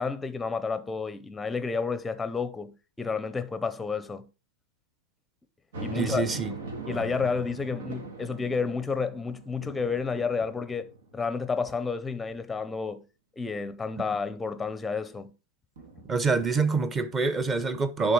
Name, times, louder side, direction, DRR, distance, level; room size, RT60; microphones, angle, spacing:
voice 1, 0.0-4.3 5.8-6.3 6.9-13.1 13.4-15.3, left 5 dB, 10° left, 0.7 m, -31 dB
sound 1, 5.7-11.3 11.8-11.9 15.8-16.8, right 3 dB, 85° right, 2.1 m, -40 dB
voice 2, 5.9-6.6 16.1-18.1, right 4 dB, 20° right, 1.0 m, -26 dB
10.5 x 4.0 x 4.9 m
hypercardioid pair, 120°, 0 cm